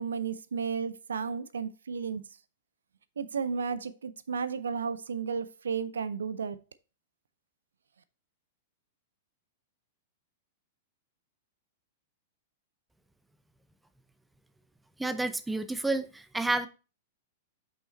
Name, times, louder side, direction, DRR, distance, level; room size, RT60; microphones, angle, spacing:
voice 1, 0.0-2.2 3.2-6.6, right 6 dB, 70° right, 0.4 m, -33 dB
voice 2, 15.0-16.7, right 2 dB, 5° right, 0.6 m, -30 dB
5.7 x 5.5 x 4.1 m
figure-of-eight pair, 100°, 0 cm